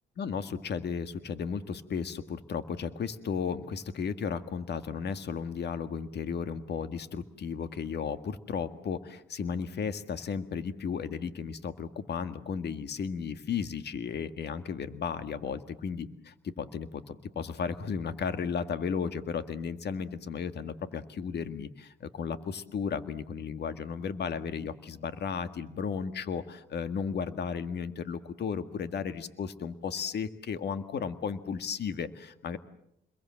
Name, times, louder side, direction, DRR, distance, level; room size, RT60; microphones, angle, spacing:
voice 1, 0.2-32.6, left 6 dB, 55° left, 10 dB, 1.9 m, -34 dB
29.0 x 22.5 x 7.6 m, 0.76 s
cardioid pair, 90°, 20 cm